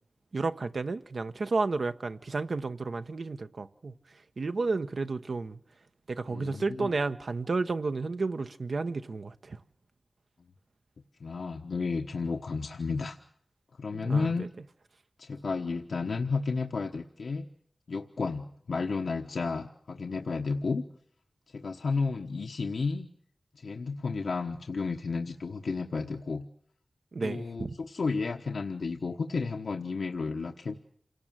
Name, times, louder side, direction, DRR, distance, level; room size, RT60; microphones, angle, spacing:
voice 1, 0.3-3.9 4.4-5.6 6.1-9.6 13.9-14.5 27.1-27.7, right 3 dB, 70° right, 1.0 m, -32 dB
voice 2, 6.3-7.0 11.2-13.2 13.8-14.5 15.2-17.5 17.9-20.8 21.5-23.1 23.5-26.5 27.2-30.7, left 4 dB, 90° left, 1.2 m, -32 dB
28.0 x 18.0 x 7.6 m
wide cardioid pair, 80°, 0 cm